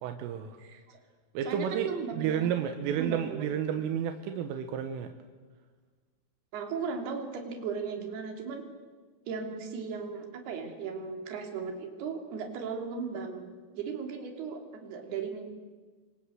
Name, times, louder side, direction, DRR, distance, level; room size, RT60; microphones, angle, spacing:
voice 1, 0.0-0.6 1.4-5.1, right 8 dB, 80° right, 7 dB, 3.7 m, -31 dB
voice 2, 0.6-1.0 1.4-2.5 2.9-3.4 6.5-8.6 9.3-15.4, right 5 dB, 55° right, 4 dB, 4.7 m, -37 dB
29.5 x 25.0 x 8.0 m, 1.4 s
omnidirectional pair, 5.9 m